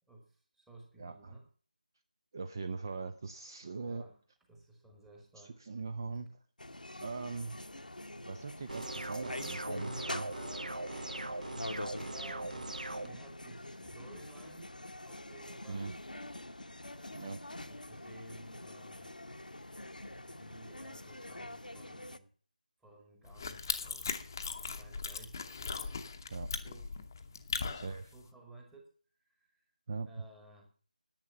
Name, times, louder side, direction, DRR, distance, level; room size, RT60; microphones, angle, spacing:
voice 1, 0.1-1.5 3.8-4.2 4.5-5.6 12.1-14.7 15.0-16.0 17.5-19.1 20.3-22.3 22.8-24.1 24.6-26.1 26.6-27.0 27.7-28.9 29.2-29.7 30.0-30.7, right 2 dB, 5° right, 1 dB, 1.3 m, -56 dB
voice 2, 1.0-1.4 2.3-4.0 5.4-6.3 7.0-7.6 8.3-10.3 15.7-15.9 17.1-17.4 26.3-26.5 27.7-28.1 29.9-30.2, right 4 dB, 25° right, 9 dB, 0.6 m, -41 dB
sound 1, 6.6-22.2, left 1 dB, 70° left, 1.1 m, -45 dB
sound 2, 8.7-13.1, right 2 dB, 60° right, 1.5 m, -40 dB
sound 3, 23.2-28.2, left 5 dB, 25° left, 0.9 m, -39 dB
10.5 x 9.3 x 7.1 m, 0.42 s
figure-of-eight pair, 160°, 5 cm